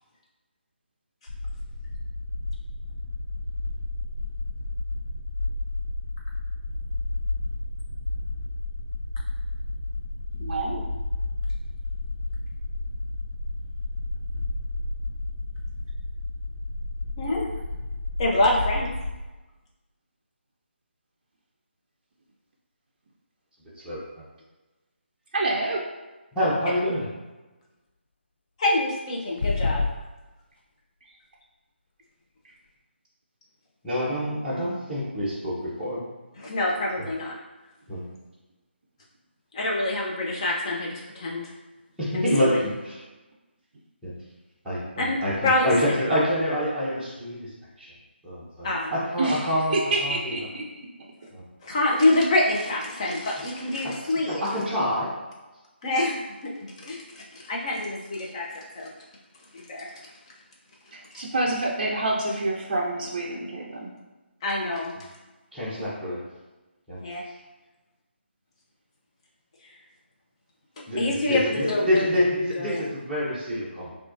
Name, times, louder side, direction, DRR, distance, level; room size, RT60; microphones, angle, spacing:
sound 1, 1.3-19.1, left 2 dB, 85° left, 0.7 m, -31 dB
voice 1, 10.4-10.8 25.3-25.8 49.2-50.7 60.9-63.9, right 2 dB, 40° right, -2 dB, 0.5 m, -27 dB
voice 2, 18.2-18.9 28.6-29.8 36.4-37.4 39.5-41.4 42.1-42.6 45.0-45.2 45.4-46.0 48.6-48.9 51.6-54.4 55.8-58.9 59.5-59.9 64.4-64.9 67.0-67.2 70.8-72.1 72.6-72.9, left 2 dB, 30° left, -2 dB, 0.8 m, -26 dB
voice 3, 26.3-27.1 33.8-36.0 37.0-37.1 37.9-38.1 42.0-42.9 44.0-44.1 44.6-47.5 47.8-47.9 48.2-49.7 50.0-50.5 51.3-51.4 53.8-53.9 54.3-55.1 65.5-66.2 66.9-67.0 70.9-73.9, equal, ahead, -14 dB, 0.9 m, -27 dB
sound 2, 29.4-30.0, left 4 dB, 60° left, 0.3 m, -25 dB
5.8 x 2.4 x 2.6 m, 1.1 s
figure-of-eight pair, 150°, 6 cm